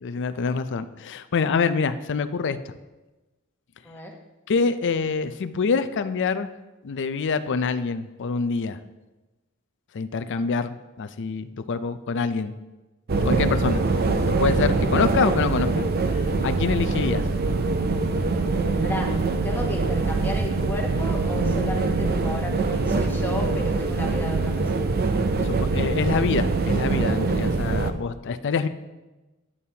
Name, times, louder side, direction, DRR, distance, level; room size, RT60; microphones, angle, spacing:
voice 1, 0.0-2.6 4.5-6.5 6.8-8.8 9.9-12.5 13.2-13.8 14.3-15.7 16.4-17.2 25.4-28.7, left 5 dB, 55° left, 11 dB, 0.5 m, -26 dB
sound 1, 13.1-27.9, right 3 dB, 45° right, 0.5 m, -23 dB
voice 2, 19.4-24.9, left 1 dB, 10° left, 0 dB, 1.0 m, -33 dB
11.0 x 8.4 x 2.8 m, 1.1 s
head